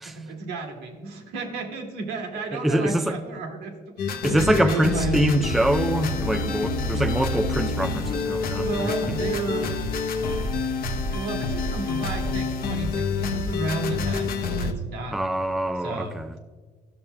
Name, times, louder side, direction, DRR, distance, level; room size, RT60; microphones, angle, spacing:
voice 1, 0.0-5.2 8.6-9.8 11.1-15.2 15.8-16.2, right 3 dB, 90° right, 1.5 m, -32 dB
voice 2, 2.5-3.1 4.2-8.7 15.1-16.3, right 1 dB, ahead, 0.4 m, -24 dB
sound 1, 4.0-14.7, left 3 dB, 60° left, 0.8 m, -27 dB
12.0 x 7.1 x 2.2 m
cardioid pair, 110°, 17 cm